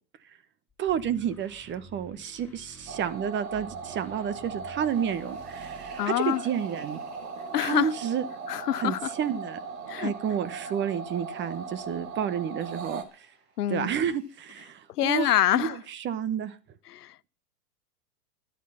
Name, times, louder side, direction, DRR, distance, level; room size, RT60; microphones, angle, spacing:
sound 1, 0.7-6.2, right 1 dB, 5° left, 5.2 m, -51 dB
voice 1, 0.8-7.0 7.5-8.2 8.8-9.6 10.0-13.3 13.7-16.6, right 8 dB, 25° right, 1.1 m, -30 dB
sound 2, 2.9-13.0, right 5 dB, 60° right, 2.3 m, -39 dB
sound 3, 4.8-14.6, right 2 dB, 80° right, 7.7 m, -55 dB
voice 2, 6.0-6.4 7.5-7.9 8.5-9.1 9.9-10.1 13.6-13.9 15.0-15.7 16.9-17.3, left 13 dB, 80° left, 0.7 m, -26 dB
13.5 x 10.5 x 5.6 m
hypercardioid pair, 115°, 46 cm